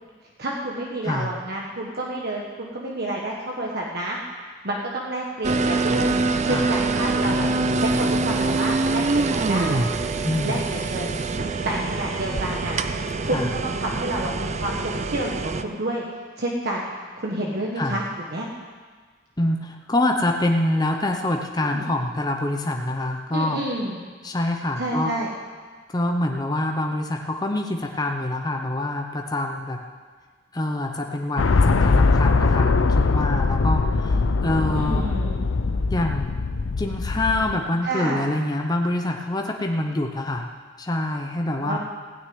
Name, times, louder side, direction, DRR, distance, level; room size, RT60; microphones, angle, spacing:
voice 1, 0.4-4.2 4.6-6.2 6.4-7.5 7.8-9.8 10.4-12.8 13.2-16.0 16.4-16.9 17.2-18.0 18.3-18.5 21.6-21.9 23.3-24.0 24.8-25.3 34.7-35.4 37.8-38.3 41.6-41.8, right 1 dB, 55° right, -2 dB, 1.3 m, -29 dB
sound 1, 5.4-15.6, right 3 dB, 35° right, 0.5 m, -24 dB
voice 2, 10.2-10.6 13.2-13.5 17.8-18.0 19.4-23.6 24.2-25.1 25.9-29.8 30.5-35.1 35.9-36.3 36.8-40.5 40.8-41.8, left 1 dB, 20° left, 2 dB, 0.7 m, -25 dB
sound 2, 31.4-37.6, left 3 dB, 75° left, 0.6 m, -21 dB
16.0 x 6.5 x 9.5 m, 1.5 s
head